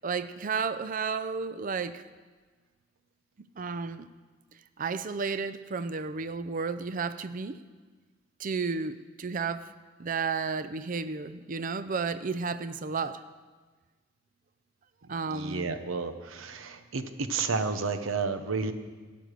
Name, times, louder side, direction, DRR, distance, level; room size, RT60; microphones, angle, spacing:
voice 1, 0.0-2.0 3.6-4.1 4.8-7.6 8.4-9.7 10.0-13.2 15.1-15.7, right 5 dB, 40° right, 13 dB, 0.4 m, -32 dB
voice 2, 15.0-18.7, right 4 dB, 85° right, 9 dB, 0.9 m, -31 dB
12.5 x 9.3 x 6.6 m, 1.4 s
head